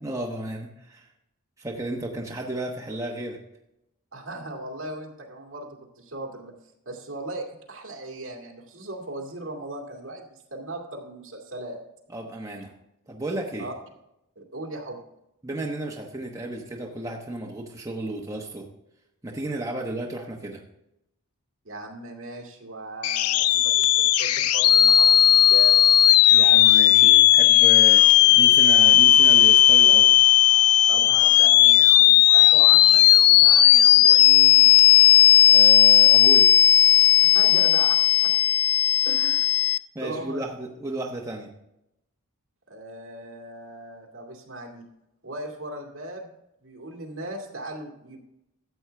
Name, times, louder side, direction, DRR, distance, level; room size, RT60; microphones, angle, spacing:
voice 1, 0.0-1.1 1.6-3.4 12.1-12.7 13.1-13.7 15.4-18.7 19.2-20.6 26.3-28.0 28.4-30.1 35.4-36.5 39.9-41.5, right 1 dB, 15° right, -1 dB, 1.0 m, -33 dB
voice 2, 4.1-6.5 6.9-11.8 13.6-13.7 14.4-15.0 21.6-25.8 26.3-26.8 30.9-34.7 37.2-38.0 38.2-38.3 39.0-39.5 40.0-40.4 42.7-44.8 45.2-48.2, right 1 dB, 60° right, 1 dB, 2.2 m, -38 dB
sound 1, 23.0-39.8, left 12 dB, 75° left, 0.4 m, -16 dB
13.5 x 8.0 x 3.4 m, 0.84 s
head